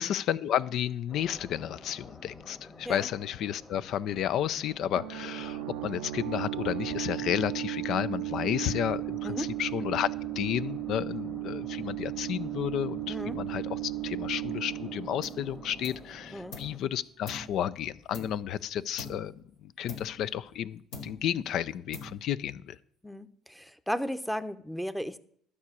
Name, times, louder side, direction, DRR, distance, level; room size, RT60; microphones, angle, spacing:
voice 1, 0.0-10.1 10.4-22.8, left 10 dB, 65° left, 17 dB, 0.4 m, -32 dB
sound 1, 1.1-16.8, left 2 dB, 25° left, 1.7 m, -51 dB
sound 2, 5.0-16.5, right 18 dB, 90° right, 0.4 m, -36 dB
sound 3, 15.2-15.5 15.8-16.8 17.3-18.6 19.0-19.4 19.9-20.6 20.9-21.4 21.9-22.5, left 3 dB, 80° left, 2.2 m, -44 dB
voice 2, 23.0-25.2, equal, ahead, 12 dB, 0.8 m, -35 dB
12.0 x 4.9 x 8.4 m, 0.64 s
hypercardioid pair, 65°, 0 cm